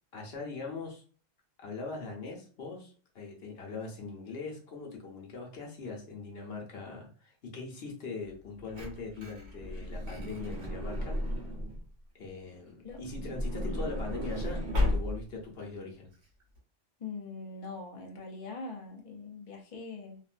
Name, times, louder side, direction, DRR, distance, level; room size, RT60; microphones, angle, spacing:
voice 1, 0.1-1.0 1.6-11.2 12.2-16.1, left 4 dB, 60° left, 0 dB, 1.0 m, -41 dB
Truck / Door, 8.3-11.9 12.9-15.4 16.1-16.2 16.4-16.6, left 1 dB, 75° right, 1.5 m, -34 dB
voice 2, 17.0-20.2, left 3 dB, 40° left, 0 dB, 0.5 m, -42 dB
2.9 x 2.5 x 2.5 m, 0.41 s
omnidirectional pair, 1.2 m